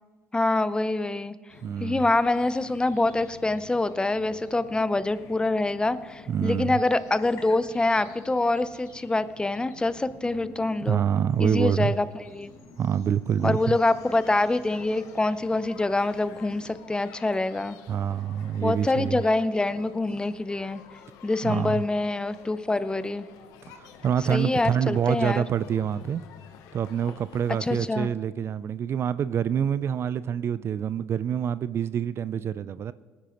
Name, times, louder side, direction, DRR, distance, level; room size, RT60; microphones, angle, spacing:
voice 1, 0.3-1.3 1.8-11.0 11.4-12.5 13.4-17.8 18.6-20.8 21.2-23.3 24.3-25.4 27.6-28.1, left 2 dB, 15° left, 0.5 m, -25 dB
sound 1, 1.5-16.8, left 3 dB, 60° left, 1.7 m, -49 dB
voice 2, 1.6-2.1 6.3-6.8 10.8-12.0 12.8-13.6 17.9-19.2 21.4-21.8 23.8-26.2 26.7-32.9, right 8 dB, 45° right, 0.4 m, -26 dB
sound 2, 13.6-27.9, left 7 dB, 80° left, 1.0 m, -49 dB
18.5 x 9.8 x 3.0 m
supercardioid pair, 75°, 6 cm